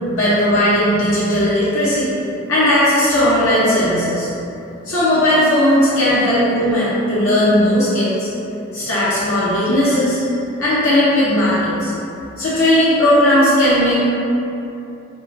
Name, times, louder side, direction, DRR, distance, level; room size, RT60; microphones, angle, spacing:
voice 1, 0.2-2.1 2.5-4.3 4.9-8.3 8.7-10.3 10.6-11.9 12.4-14.0, left 1 dB, 85° left, -10 dB, 0.6 m, -16 dB
5.2 x 2.1 x 2.5 m, 2.8 s
head